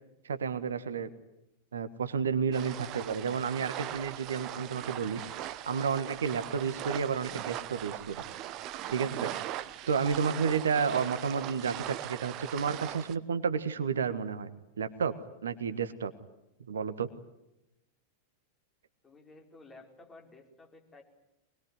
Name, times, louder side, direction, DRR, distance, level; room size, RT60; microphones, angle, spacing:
voice 1, 0.2-1.1 1.7-5.2 5.6-8.2 8.9-9.3 9.9-14.5 14.8-15.1 15.4-16.1 16.7-17.1, right 6 dB, 70° right, 12 dB, 1.5 m, -31 dB
sound 1, 2.5-13.1, right 13 dB, 40° right, 1.1 m, -40 dB
voice 2, 19.0-21.0, left 2 dB, 15° left, 2 dB, 4.8 m, -54 dB
24.5 x 21.0 x 9.7 m, 0.90 s
figure-of-eight pair, 90°, 0 cm